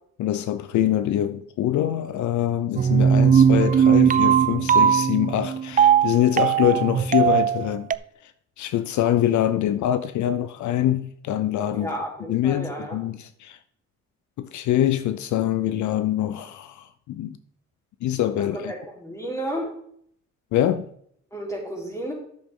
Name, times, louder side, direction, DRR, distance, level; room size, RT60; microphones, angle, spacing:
voice 1, 0.2-7.9 8.2-8.3 8.6-11.9 12.3-13.6 14.4-17.4 18.0-18.7 20.5-20.9, left 11 dB, 70° left, 0.6 m, -24 dB
sound 1, 2.8-8.0, right 8 dB, 30° right, 0.4 m, -18 dB
voice 2, 11.7-13.0 18.5-19.7 21.3-22.1, right 1 dB, 10° left, 3.7 m, -32 dB
10.5 x 7.2 x 3.7 m
cardioid pair, 90°, 30 cm